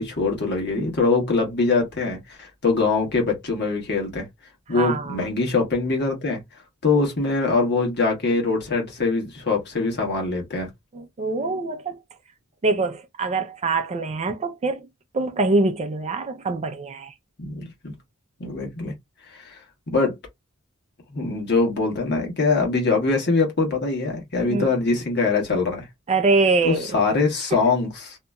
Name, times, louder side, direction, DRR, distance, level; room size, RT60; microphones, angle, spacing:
voice 1, 0.0-4.3 4.7-6.4 6.8-10.7 17.4-17.9 18.4-18.9 19.3-19.6 19.9-20.1 21.1-25.9 26.6-28.2, left 3 dB, 50° left, 1.3 m, -23 dB
voice 2, 4.7-5.2 10.9-12.0 12.6-14.9 15.1-17.1 24.4-24.7 26.1-27.0 27.5-27.6, right 3 dB, 30° right, 0.4 m, -24 dB
2.8 x 2.6 x 2.2 m
head